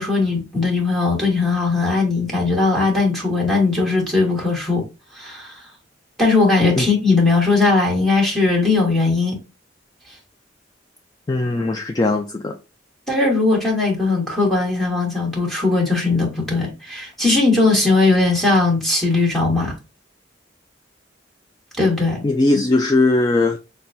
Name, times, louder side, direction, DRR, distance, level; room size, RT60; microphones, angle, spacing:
voice 1, 0.0-4.8 5.1-5.6 6.2-9.3 13.1-19.7 21.8-22.2, left 3 dB, ahead, 1.5 m, -18 dB
voice 2, 11.3-12.6 22.2-23.6, left 2 dB, 20° left, 0.3 m, -19 dB
5.7 x 2.2 x 2.6 m
head